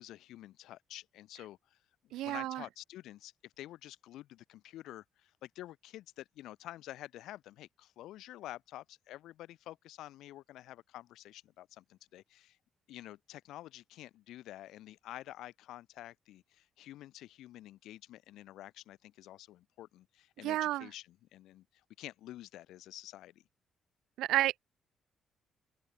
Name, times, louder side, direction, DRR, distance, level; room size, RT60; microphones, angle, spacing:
voice 1, 0.0-1.8 2.0-12.6 12.9-21.7 22.0-23.4, left 14 dB, 85° left, 4.6 m, -49 dB
voice 2, 2.1-2.6 20.4-20.9 24.2-24.6, right 15 dB, 90° right, 0.6 m, -31 dB
cardioid pair, 90°, 0 cm